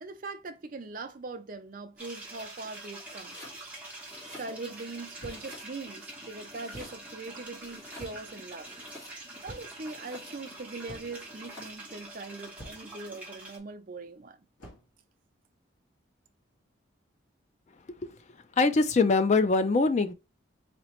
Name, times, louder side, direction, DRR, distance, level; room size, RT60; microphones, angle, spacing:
voice 1, 0.0-3.4 4.4-8.7 9.4-14.4, right 3 dB, 45° right, 0.5 m, -41 dB
sound 1, 2.0-13.6, right 2 dB, 5° right, 1.1 m, -45 dB
Domestic sounds home sounds, 3.0-3.6 4.0-4.9 5.2-6.0 6.5-7.3 7.6-9.4 9.8-10.6 11.2-11.9, left 1 dB, 15° left, 1.7 m, -50 dB
sound 2, 5.2-5.6 6.7-7.0 8.0-8.4 9.4-9.9 10.9-11.3 12.6-13.0 14.6-14.9, right 1 dB, 60° left, 1.6 m, -47 dB
voice 2, 18.6-20.1, left 3 dB, 35° left, 0.4 m, -23 dB
4.0 x 2.9 x 3.0 m
head